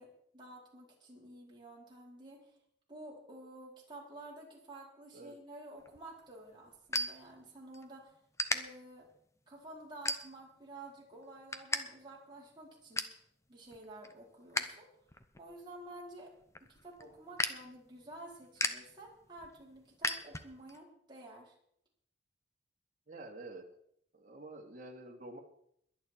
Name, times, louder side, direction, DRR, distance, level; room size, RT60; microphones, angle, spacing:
voice 1, 0.0-2.5 2.9-8.1 8.5-9.1 9.5-13.2 13.5-14.9 15.4-16.3 16.6-21.5, right 1 dB, 25° right, -4 dB, 4.5 m, -51 dB
sound 1, 5.8-7.8 8.3-8.6 9.1-9.4 10.0-10.6 11.0-11.8 12.1-12.2 12.6-13.2 13.7-14.8 15.1-20.8, left 2 dB, 15° left, 0.9 m, -37 dB
voice 2, 23.1-23.7 24.1-25.4, right 2 dB, 45° right, -1 dB, 2.4 m, -48 dB
22.0 x 9.0 x 4.6 m, 0.70 s
head